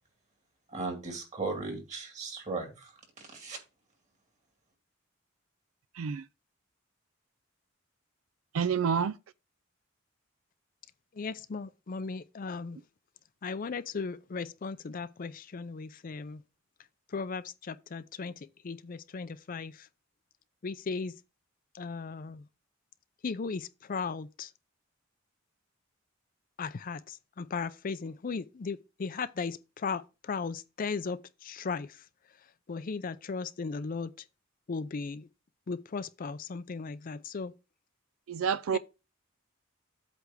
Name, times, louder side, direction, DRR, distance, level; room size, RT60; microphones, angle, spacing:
voice 1, 0.7-2.9 3.2-3.6, right 3 dB, 35° right, 2.4 m, -37 dB
voice 2, 8.5-9.2 38.3-38.8, right 6 dB, 80° right, 0.4 m, -28 dB
voice 3, 11.1-12.8 13.4-16.4 17.1-19.9 20.6-21.1 21.7-22.5 23.2-24.5 26.6-32.1 32.7-34.3 34.7-35.3 35.7-37.5 38.7-38.8, left 4 dB, 45° left, 0.5 m, -37 dB
8.2 x 3.4 x 6.2 m
head